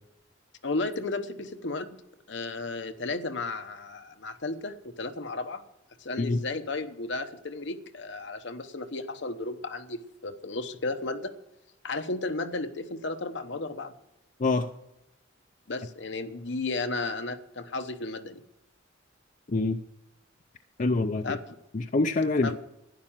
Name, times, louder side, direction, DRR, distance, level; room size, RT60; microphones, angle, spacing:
voice 1, 0.6-2.0 2.3-5.6 6.0-11.3 11.8-13.9 15.7-18.4 21.2-21.6 22.4-22.6, left 3 dB, 60° left, 8 dB, 1.0 m, -34 dB
voice 2, 20.8-21.3 21.7-22.5, left 3 dB, 40° left, 7 dB, 0.5 m, -25 dB
12.0 x 9.8 x 7.3 m, 0.89 s
head